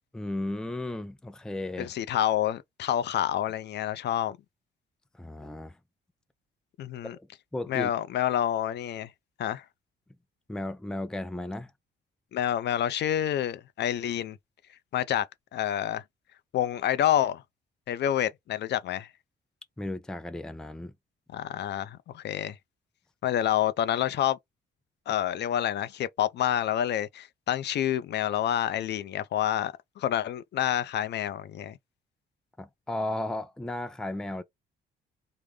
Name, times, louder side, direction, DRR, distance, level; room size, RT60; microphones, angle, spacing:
voice 1, 0.1-1.9 5.1-5.8 7.2-7.9 10.5-11.7 19.8-20.9 32.6-34.4, left 1 dB, 5° left, 0.4 m, -35 dB
voice 2, 1.8-4.4 6.8-7.2 7.7-9.1 9.4-9.6 12.3-14.4 14.9-15.3 15.5-16.0 16.5-17.4 17.9-19.1 21.3-22.6 23.2-24.4 25.1-31.8, left 11 dB, 60° left, 0.5 m, -28 dB
3.6 x 2.0 x 3.2 m
cardioid pair, 90°, 20 cm